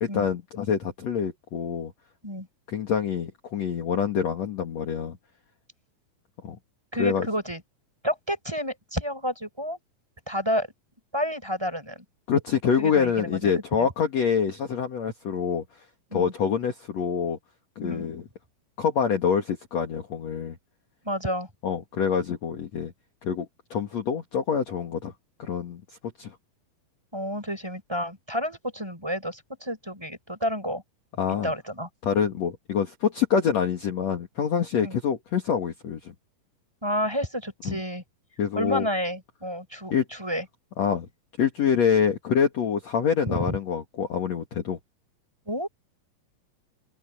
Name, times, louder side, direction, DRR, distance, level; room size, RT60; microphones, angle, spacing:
voice 1, 0.0-1.9 2.7-5.2 6.4-6.6 7.0-7.3 12.3-15.6 16.1-17.4 17.8-18.3 18.8-20.6 21.6-22.9 23.2-25.1 25.4-25.8 26.2-26.4 31.2-31.5 32.0-36.1 37.7-37.8 38.4-38.9 39.9-40.0 40.8-41.1 41.4-44.8, left 7 dB, 50° left, 2.7 m, -26 dB
voice 2, 6.9-7.6 8.0-9.8 10.3-10.7 11.1-12.0 12.8-13.9 16.1-16.3 17.8-18.1 21.0-21.5 27.1-30.8 31.4-31.9 34.8-35.0 36.8-38.0 38.6-40.5 43.3-43.6 45.5-45.7, equal, 5° right, 6.9 m, -30 dB
omnidirectional pair, 4.3 m